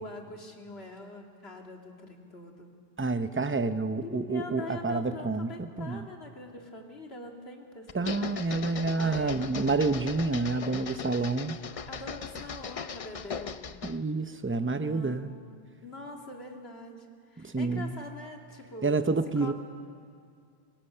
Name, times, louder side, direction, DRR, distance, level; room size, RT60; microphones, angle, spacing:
voice 1, 0.0-2.7 4.0-8.6 8.9-9.7 11.9-13.7 14.8-15.3 15.8-17.1 17.3-19.0 19.4-19.5, left 2 dB, 85° left, 1 dB, 2.5 m, -43 dB
voice 2, 3.0-6.1 7.9-11.6 13.8-15.3 17.4-18.0 18.8-19.5, right 3 dB, 15° right, 10 dB, 0.5 m, -29 dB
sound 1, 7.9-14.0, left 6 dB, 40° left, 0.6 m, -39 dB
25.5 x 22.0 x 6.7 m, 2.3 s
omnidirectional pair, 1.0 m